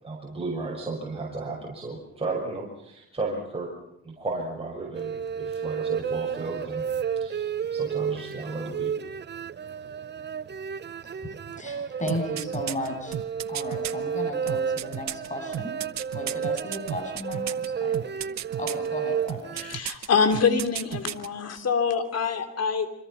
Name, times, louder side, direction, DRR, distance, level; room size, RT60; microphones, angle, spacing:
voice 1, 0.0-3.7 4.0-6.9 7.2-8.9, right 3 dB, 20° right, -3 dB, 6.1 m, -34 dB
sound 1, 4.9-19.8, right 7 dB, 35° right, 0.9 m, -32 dB
voice 2, 11.0-13.2 13.5-15.7 16.1-18.0 18.5-19.6, left 1 dB, 25° left, 3 dB, 7.9 m, -35 dB
sound 2, 12.1-13.9 14.5-17.7 17.9-18.9 19.3-20.1 20.3-21.3 21.6-21.7, right 12 dB, 65° right, 1.0 m, -33 dB
voice 3, 19.6-22.9, left 5 dB, 55° left, 8 dB, 3.4 m, -25 dB
27.0 x 25.0 x 5.8 m, 0.78 s
cardioid pair, 90°, 30 cm